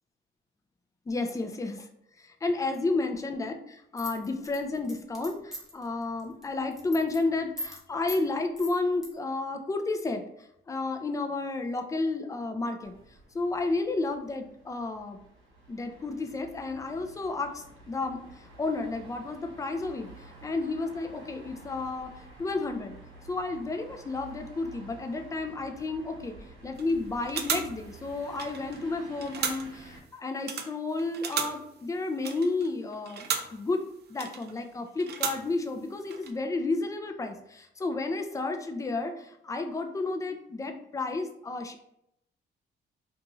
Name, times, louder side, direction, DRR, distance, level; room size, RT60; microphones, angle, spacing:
voice 1, 1.1-1.9 2.2-13.0 13.3-15.2 15.7-22.1 22.4-22.9 23.3-26.3 26.6-33.8 34.1-41.8, left 3 dB, 15° left, 5 dB, 0.4 m, -32 dB
sound 1, 4.0-5.8 6.2-6.4 6.7-7.2 7.6-7.8 8.1-8.2 8.6-9.1, left 1 dB, ahead, 0.8 m, -39 dB
sound 2, 12.8-30.0, right 2 dB, 80° right, 0.9 m, -51 dB
sound 3, 26.8-27.0 27.2-28.9 29.1-29.9 30.4-33.7 34.1-34.7 35.0-35.8 36.0-36.3, right 7 dB, 55° right, 0.4 m, -35 dB
2.5 x 2.4 x 2.9 m, 0.77 s
cardioid pair, 90°, 20 cm